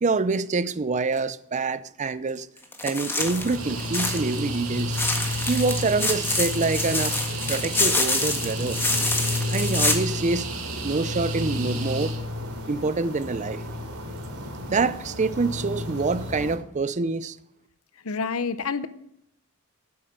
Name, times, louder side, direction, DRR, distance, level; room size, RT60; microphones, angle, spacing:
voice 1, 0.0-2.5 2.8-5.0 5.5-7.2 7.5-8.8 9.5-10.5 10.8-12.2 12.7-13.6 14.7-17.4, right 3 dB, 35° right, 0.5 m, -26 dB
sound 1, 2.7-4.4 4.8-9.9, left 2 dB, 10° left, 1.6 m, -26 dB
sound 2, 3.2-16.6, left 2 dB, 90° right, 3.1 m, -32 dB
sound 3, 3.5-12.2, right 7 dB, 70° right, 2.2 m, -37 dB
voice 2, 18.0-18.9, left 5 dB, 75° left, 0.7 m, -28 dB
12.0 x 9.6 x 6.5 m
head